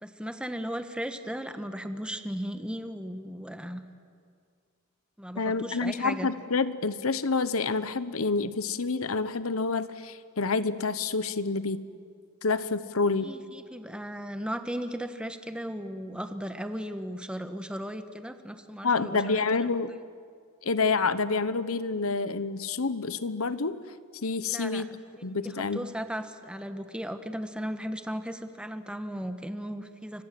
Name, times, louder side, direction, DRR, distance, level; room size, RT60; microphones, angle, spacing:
voice 1, 0.0-3.8 5.2-6.3 13.2-19.4 24.5-24.8 25.6-30.2, equal, 5° right, 8 dB, 1.3 m, -36 dB
voice 2, 5.4-11.8 12.4-13.3 18.8-19.9 20.6-23.8 24.2-24.9 25.2-25.9, left 4 dB, 75° left, 14 dB, 1.1 m, -28 dB
29.5 x 24.5 x 7.7 m, 2.2 s
head